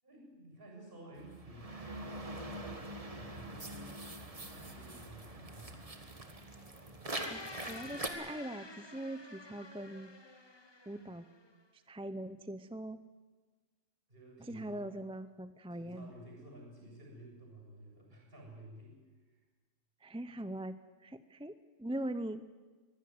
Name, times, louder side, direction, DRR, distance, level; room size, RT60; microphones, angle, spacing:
voice 1, 0.0-2.8 3.0-3.9 4.4-5.8 14.1-14.9 15.7-19.0 19.3-19.4, right 1 dB, 45° right, 0 dB, 7.3 m, -53 dB
sound 1, 1.2-8.1, right 2 dB, 25° right, 1.8 m, -44 dB
sound 2, 7.1-11.5, left 2 dB, 20° left, 1.2 m, -49 dB
voice 2, 7.3-10.1 10.9-11.2 11.7-13.0 14.4-16.1 20.0-21.5 21.8-22.4, right 1 dB, 5° right, 12 dB, 0.5 m, -42 dB
23.0 x 16.5 x 9.6 m, 1.4 s
omnidirectional pair, 1.3 m